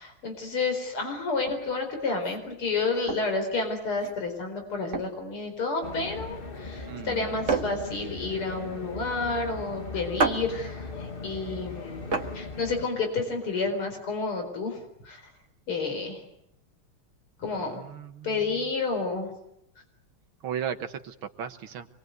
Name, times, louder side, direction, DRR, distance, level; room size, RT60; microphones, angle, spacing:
voice 1, 0.0-12.0 12.3-14.8 15.0-15.2 15.7-16.2 17.4-17.8 18.2-19.3, left 3 dB, 80° left, 5 dB, 5.3 m, -30 dB
Glass Cup Set Down, 1.4-13.6, right 4 dB, 35° right, 1.7 m, -34 dB
sound 1, 5.8-12.9, left 3 dB, 25° left, 1.6 m, -39 dB
voice 2, 6.9-7.4 17.5-18.4 20.4-21.9, right 8 dB, 70° right, 8 dB, 2.0 m, -36 dB
26.5 x 21.5 x 9.3 m, 0.79 s
omnidirectional pair, 2.4 m